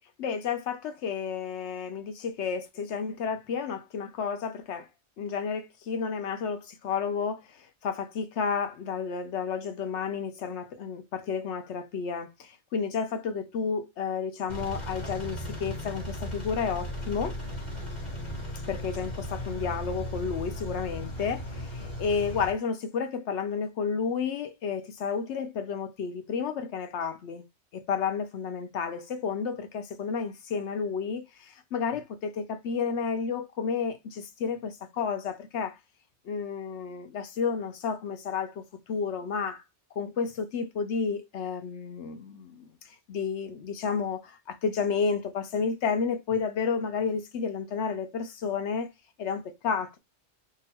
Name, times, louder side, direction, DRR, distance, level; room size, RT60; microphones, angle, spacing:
voice 1, 0.2-4.9 5.2-17.4 18.7-27.4 27.7-35.8 36.2-39.6 40.0-42.7 43.1-48.9 49.2-50.0, left 6 dB, 80° left, 1.0 m, -31 dB
Engine, 14.5-22.5, equal, 25° left, 1.2 m, -36 dB
3.0 x 2.4 x 4.2 m
omnidirectional pair, 1.2 m